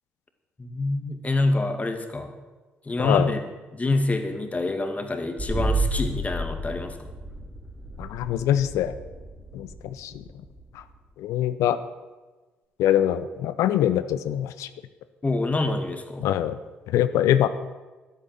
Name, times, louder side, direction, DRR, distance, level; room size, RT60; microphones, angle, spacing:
voice 1, 0.6-2.3 2.8-3.4 3.7-7.0 15.2-16.3, left 2 dB, 25° left, 6 dB, 2.2 m, -26 dB
voice 2, 3.0-3.3 8.0-8.9 9.5-10.2 10.7-10.8 11.2-11.8 12.8-14.7 16.2-16.6 16.9-17.5, left 11 dB, 65° left, 13 dB, 0.7 m, -23 dB
sound 1, 5.4-11.0, right 2 dB, 10° right, 3.1 m, -31 dB
12.0 x 12.0 x 7.5 m, 1.3 s
figure-of-eight pair, 45°, 6 cm